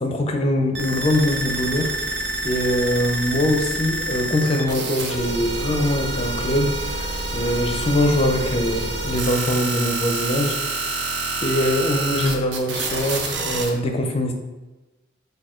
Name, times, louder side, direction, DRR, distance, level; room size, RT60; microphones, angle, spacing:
voice 1, 0.0-10.6 10.8-10.9 11.4-14.3, left 1 dB, 30° left, 4 dB, 0.5 m, -23 dB
sound 1, 0.7-13.7, right 2 dB, 65° right, 0.7 m, -27 dB
4.3 x 2.7 x 4.3 m, 1.1 s
head